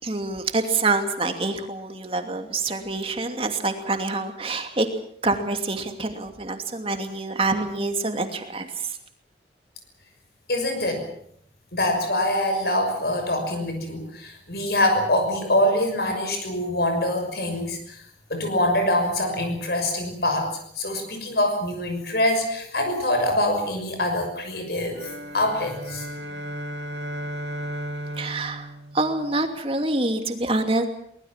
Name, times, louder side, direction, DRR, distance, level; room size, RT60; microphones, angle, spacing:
voice 1, 0.0-4.9 5.2-9.0 28.2-30.8, right 2 dB, 30° right, 5 dB, 2.7 m, -26 dB
voice 2, 10.5-11.1 11.7-18.0 18.3-26.0, left 1 dB, 60° left, 5 dB, 6.2 m, -24 dB
sound 1, 24.9-29.6, right 1 dB, 90° right, 2.8 m, -35 dB
24.0 x 20.5 x 7.5 m, 0.69 s
head